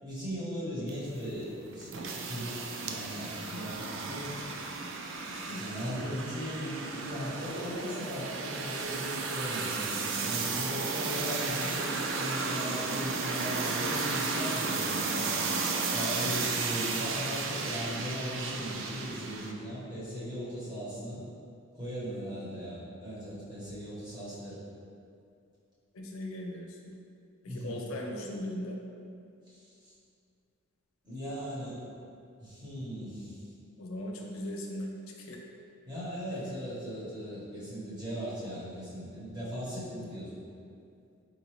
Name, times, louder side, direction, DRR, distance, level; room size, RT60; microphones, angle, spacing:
voice 1, 0.0-4.5 5.6-15.3 15.9-21.2 21.7-24.6 27.5-27.8 29.5-29.9 31.0-31.8 32.4-33.4 35.8-40.4, equal, 20° right, -11 dB, 1.1 m, -38 dB
sound 1, 0.9-19.5, right 4 dB, 65° right, 0.3 m, -34 dB
voice 2, 5.3-5.6 16.5-16.6 25.9-26.8 27.4-28.8 33.8-34.9 35.2-35.4, left 1 dB, 85° left, 0 dB, 0.5 m, -38 dB
4.0 x 2.6 x 3.0 m, 2.4 s
head